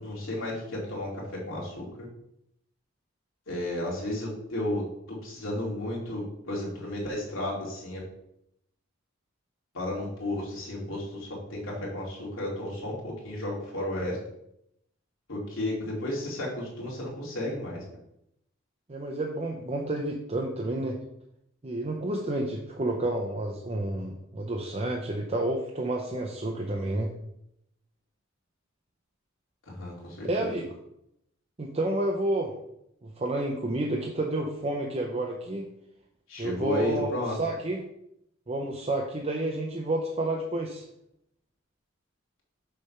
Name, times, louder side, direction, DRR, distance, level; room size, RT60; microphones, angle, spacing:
voice 1, 0.0-2.1 3.5-8.0 9.7-14.2 15.3-17.8 29.7-30.6 36.3-37.4, left 1 dB, 80° left, -4 dB, 2.5 m, -33 dB
voice 2, 18.9-21.0 21.6-27.1 30.2-30.7 31.6-32.5 33.0-35.7 36.4-37.1 37.4-37.8 38.5-40.8, right 1 dB, 30° right, 0 dB, 0.7 m, -30 dB
6.6 x 3.5 x 5.6 m, 0.78 s
head